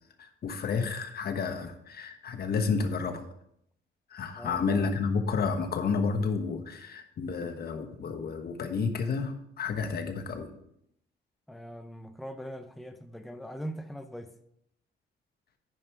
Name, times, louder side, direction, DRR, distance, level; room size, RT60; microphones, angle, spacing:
voice 1, 0.2-3.2 4.1-10.5, left 5 dB, 50° left, 1.2 m, -31 dB
voice 2, 4.4-4.9 11.5-14.3, equal, ahead, 0.6 m, -41 dB
9.4 x 5.5 x 4.8 m
cardioid pair, 90°, 20 cm